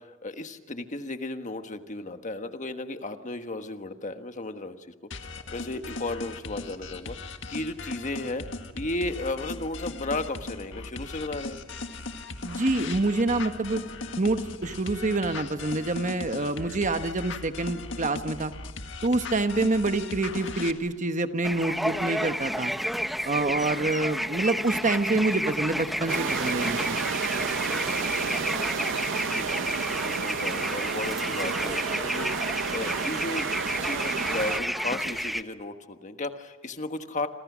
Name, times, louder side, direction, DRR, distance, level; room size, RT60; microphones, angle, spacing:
voice 1, 0.0-4.9 5.2-7.2 7.5-8.4 8.7-11.6 29.2-37.3, left 2 dB, 40° left, 7 dB, 1.4 m, -34 dB
sound 1, 5.1-20.7, left 3 dB, 70° left, 1.9 m, -38 dB
voice 2, 12.4-13.8 14.2-18.5 19.0-22.7 23.2-27.0, right 2 dB, 40° right, 9 dB, 1.1 m, -27 dB
sound 2, 21.4-35.4, equal, ahead, 0.8 m, -31 dB
sound 3, 26.1-34.6, right 5 dB, 70° right, 0.8 m, -31 dB
29.0 x 26.5 x 6.2 m, 1.3 s
head